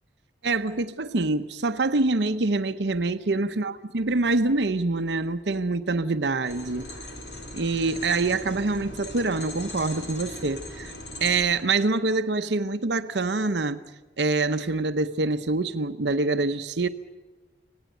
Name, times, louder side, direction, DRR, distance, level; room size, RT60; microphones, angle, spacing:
voice 1, 0.4-6.9 7.5-10.9 11.2-13.8 14.2-16.9, right 3 dB, 75° right, 0.8 m, -25 dB
sound 1, 6.5-11.5, left 1 dB, 80° left, 4.7 m, -39 dB
26.0 x 17.5 x 9.1 m
head